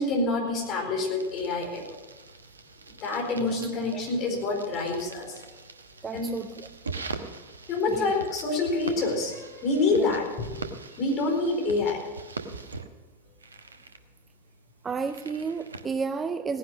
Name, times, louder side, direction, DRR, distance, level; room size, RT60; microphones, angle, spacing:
voice 1, 0.0-1.8 3.0-5.3 6.1-6.4 7.7-10.7 11.0-12.0, left 3 dB, 35° left, 4.5 m, -27 dB
sound 1, 1.2-15.9, right 4 dB, 75° right, 1.1 m, -43 dB
voice 2, 6.0-6.5 8.0-8.1 9.9-10.1 14.8-16.6, right 5 dB, 20° right, 0.5 m, -31 dB
17.5 x 10.5 x 6.3 m
figure-of-eight pair, 90°, 0 cm